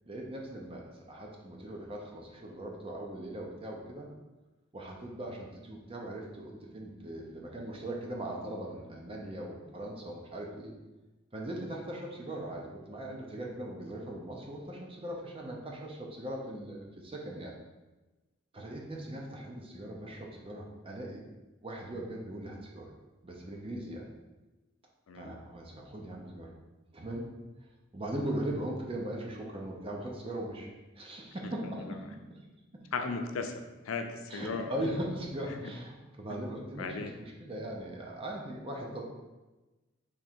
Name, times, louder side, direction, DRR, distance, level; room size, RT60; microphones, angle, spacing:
voice 1, 0.1-4.1 4.7-10.7 11.3-17.5 18.5-21.2 21.6-22.9 23.2-24.1 25.1-26.5 26.9-27.3 27.9-30.7 31.0-32.4 32.7-32.8 34.3-39.0, right 1 dB, 30° right, -1 dB, 0.7 m, -39 dB
voice 2, 31.6-32.0 32.9-33.5 33.8-34.7 35.6-35.7 36.8-37.1, left 4 dB, 85° left, 6 dB, 0.5 m, -36 dB
3.7 x 3.0 x 4.4 m, 1.1 s
head